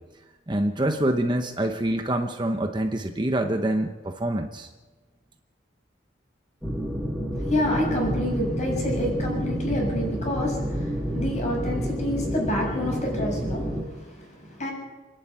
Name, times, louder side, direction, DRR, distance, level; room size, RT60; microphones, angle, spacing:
voice 1, 0.5-4.7, right 1 dB, 25° right, 5 dB, 0.9 m, -26 dB
sound 1, 6.6-13.8, equal, ahead, 2.3 m, -29 dB
voice 2, 7.4-14.7, left 1 dB, 35° left, -1 dB, 7.1 m, -28 dB
27.5 x 11.0 x 8.7 m, 1.3 s
head